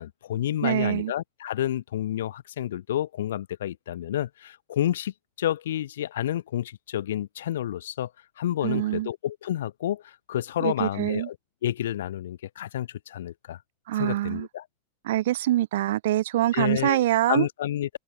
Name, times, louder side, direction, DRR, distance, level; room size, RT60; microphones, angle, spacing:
voice 1, 0.0-8.1 8.4-11.4 11.6-13.6 14.0-14.7 16.5-17.9, left 12 dB, 90° left, 1.7 m, -30 dB
voice 2, 0.6-1.1 8.6-9.1 10.6-11.3 13.9-14.5 15.0-17.5, right 14 dB, 75° right, 1.4 m, -24 dB
open air
supercardioid pair, 150°, 0 cm